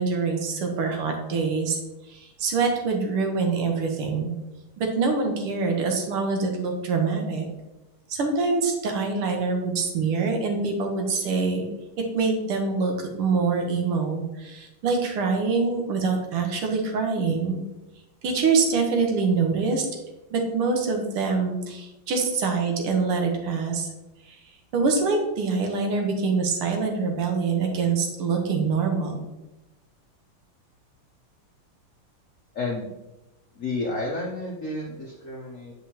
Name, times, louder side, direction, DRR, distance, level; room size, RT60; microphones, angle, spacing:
voice 1, 0.0-1.8 2.1-4.3 4.8-7.5 8.1-11.7 12.1-17.6 18.2-19.9 20.3-23.9 24.3-24.4 24.7-29.2, right 4 dB, 90° right, 3 dB, 2.0 m, -25 dB
voice 2, 32.5-32.9 33.5-35.7, left 2 dB, 65° left, -2 dB, 0.8 m, -31 dB
7.6 x 5.4 x 2.8 m, 1.0 s
omnidirectional pair, 2.4 m